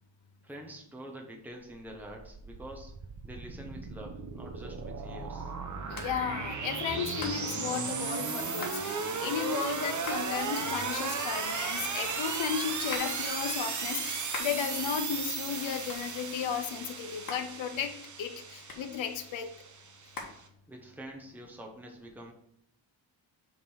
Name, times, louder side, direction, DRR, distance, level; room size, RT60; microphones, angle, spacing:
voice 1, 0.4-2.9 3.2-5.5 20.7-22.3, right 1 dB, 5° right, 0 dB, 1.3 m, -46 dB
sound 1, 1.9-20.4, right 5 dB, 40° right, 1.0 m, -36 dB
Hands, 4.4-21.1, left 3 dB, 45° left, 1.6 m, -47 dB
voice 2, 5.9-17.9 18.2-19.5, left 8 dB, 75° left, 6 dB, 0.9 m, -34 dB
7.3 x 3.9 x 6.3 m, 0.71 s
cardioid pair, 120°, 47 cm